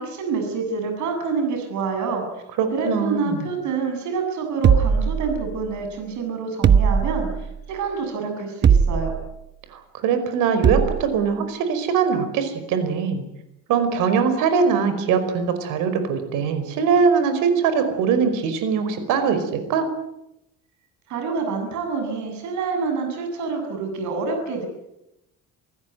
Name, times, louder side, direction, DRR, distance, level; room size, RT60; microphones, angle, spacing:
voice 1, 0.0-2.4 2.7-9.1 21.1-24.7, right 4 dB, 70° right, 4 dB, 7.6 m, -27 dB
voice 2, 2.6-3.5 9.7-13.2 13.7-19.9, right 6 dB, 85° right, 9 dB, 5.1 m, -22 dB
sound 1, 4.6-5.7 6.6-7.5 8.6-9.3 10.6-11.1, right 7 dB, 35° right, 1.1 m, -19 dB
28.0 x 16.0 x 9.4 m, 0.85 s
cardioid pair, 150°, 31 cm